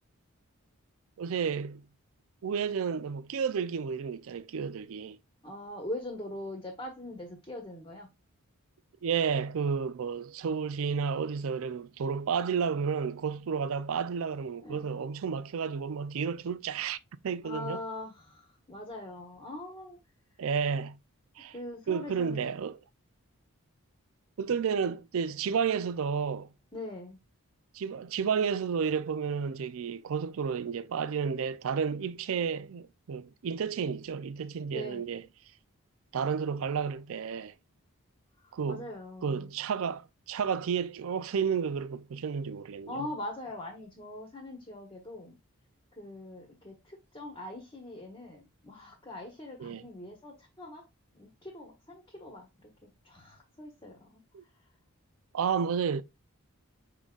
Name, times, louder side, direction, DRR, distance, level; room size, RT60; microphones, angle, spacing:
voice 1, 1.2-1.8 2.4-5.2 9.0-17.0 17.2-17.8 20.4-21.0 21.4-21.5 21.9-22.8 24.4-26.5 27.7-35.2 36.1-37.5 38.5-38.9 39.2-42.9 49.6-49.9 54.3-54.4 55.3-56.0, right 6 dB, 65° right, 0.4 m, -31 dB
voice 2, 5.4-8.1 14.6-14.9 17.4-20.0 21.5-22.5 26.7-27.2 34.7-35.0 38.4-39.5 42.9-45.3 46.0-50.8 51.1-54.2, left 1 dB, 20° left, 1.1 m, -42 dB
5.3 x 3.7 x 2.3 m
head